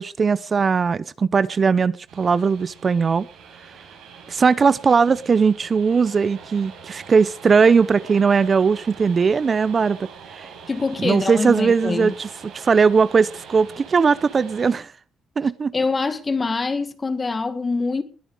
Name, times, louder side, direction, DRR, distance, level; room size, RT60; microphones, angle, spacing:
voice 1, 0.0-3.3 4.3-10.5 11.0-14.9 15.4-15.7, right 5 dB, 40° right, 0.6 m, -19 dB
sound 1, 2.1-14.7, right 6 dB, 85° right, 5.8 m, -43 dB
voice 2, 10.7-12.1 15.7-18.0, left 4 dB, 30° left, 1.9 m, -24 dB
20.5 x 9.0 x 4.9 m
cardioid pair, 90°, 0 cm